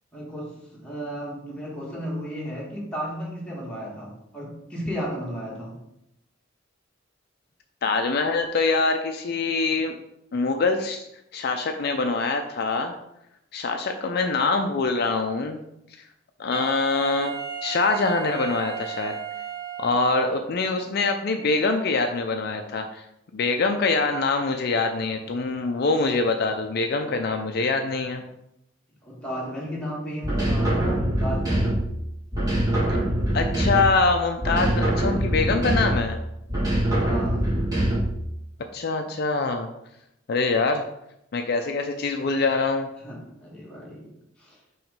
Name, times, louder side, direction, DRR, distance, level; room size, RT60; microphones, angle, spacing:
voice 1, 0.1-5.8 29.0-31.9 36.8-37.5 43.0-44.1 44.4-44.6, equal, 5° left, -5 dB, 1.7 m, -34 dB
voice 2, 7.8-9.9 10.3-11.1 11.3-13.0 13.5-15.6 16.4-19.2 19.8-23.0 23.3-28.2 32.9-33.0 33.3-36.2 38.7-39.7 40.3-40.8 41.3-42.9, left 3 dB, 55° left, 5 dB, 0.4 m, -24 dB
Wind instrument woodwind instrument, 16.5-20.4, right 8 dB, 55° right, 0.7 m, -35 dB
sound 1, 30.2-31.9 32.3-34.1 34.4-36.1 36.5-38.2, right 1 dB, 20° right, 2.1 m, -24 dB
5.8 x 3.2 x 5.2 m, 0.82 s
head